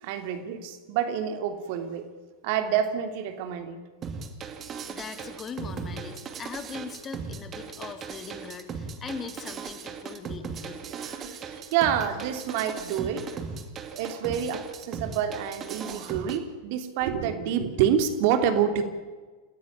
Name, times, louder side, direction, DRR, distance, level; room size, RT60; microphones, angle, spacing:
voice 1, 0.0-2.1 2.4-3.8 10.9-13.6 13.8-18.8, right 9 dB, 45° right, 7 dB, 3.1 m, -28 dB
sound 1, 4.0-16.4, right 6 dB, 25° right, 2.7 m, -38 dB
voice 2, 4.9-10.9, left 5 dB, 20° left, 9 dB, 2.6 m, -40 dB
29.0 x 17.0 x 9.0 m, 1.4 s
figure-of-eight pair, 90°, 0 cm